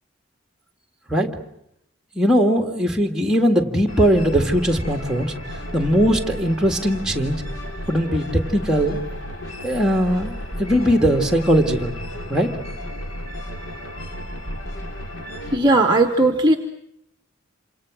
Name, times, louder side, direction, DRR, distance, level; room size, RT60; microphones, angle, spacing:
voice 1, 2.2-5.3 5.7-7.4 7.9-9.0 9.6-12.0 12.3-12.5, equal, 5° right, 3 dB, 1.9 m, -19 dB
sound 1, 3.9-15.6, equal, 85° left, 2.9 m, -33 dB
voice 2, 15.5-16.6, right 2 dB, 20° right, 6 dB, 1.0 m, -16 dB
28.0 x 26.5 x 6.2 m, 0.78 s
head